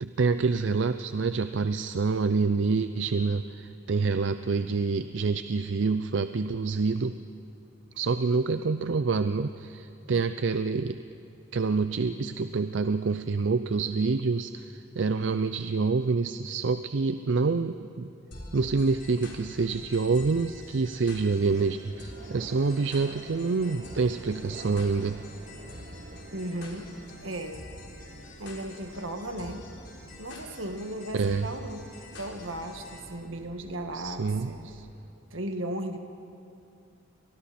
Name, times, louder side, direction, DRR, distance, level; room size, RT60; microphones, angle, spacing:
voice 1, 0.0-7.2 8.0-11.0 11.5-18.1 18.5-25.2 31.1-31.5 33.9-34.6, right 4 dB, 65° right, 10 dB, 0.5 m, -27 dB
sound 1, 18.3-33.1, left 2 dB, 60° left, 3.9 m, -47 dB
sound 2, 21.5-35.1, right 2 dB, 45° right, 1.0 m, -49 dB
voice 2, 26.3-26.9 27.2-27.7 28.4-29.7 30.2-31.9 32.2-34.8 35.3-36.0, right 1 dB, 85° right, 5 dB, 1.7 m, -36 dB
30.0 x 24.5 x 4.3 m, 2.6 s
head